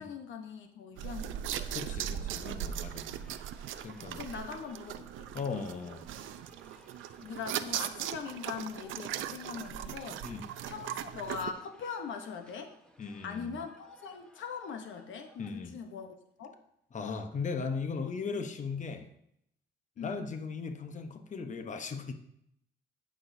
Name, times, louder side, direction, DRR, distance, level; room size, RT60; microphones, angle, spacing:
voice 1, 0.0-1.7 2.0-2.1 4.1-5.3 7.2-10.2 10.7-12.7 13.2-16.5 20.0-20.3, left 6 dB, 75° left, 5 dB, 1.0 m, -41 dB
sound 1, 1.0-11.5, right 10 dB, 85° right, 0.6 m, -39 dB
voice 2, 1.7-3.2 3.8-4.2 5.3-6.0 10.2-10.5 13.0-13.6 15.4-15.7 16.9-19.1 20.0-22.1, left 5 dB, 40° left, 7 dB, 0.9 m, -37 dB
sound 2, 2.3-15.6, left 1 dB, 5° left, 1.1 m, -61 dB
17.5 x 6.2 x 2.7 m, 0.74 s
cardioid pair, 90°, 20 cm